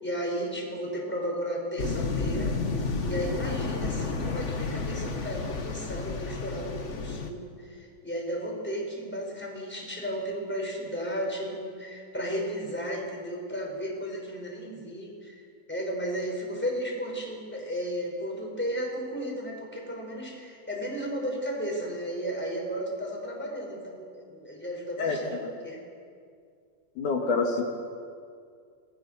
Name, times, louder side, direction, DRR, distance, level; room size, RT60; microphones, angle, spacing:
voice 1, 0.0-2.5 3.0-15.4 15.7-25.3 25.6-25.8, equal, 5° left, -1 dB, 5.6 m, -34 dB
sound 1, 1.8-7.3, left 4 dB, 40° left, 1.0 m, -31 dB
voice 2, 27.0-27.6, left 4 dB, 75° left, 1 dB, 3.5 m, -26 dB
27.5 x 21.5 x 7.2 m, 2.3 s
omnidirectional pair, 3.6 m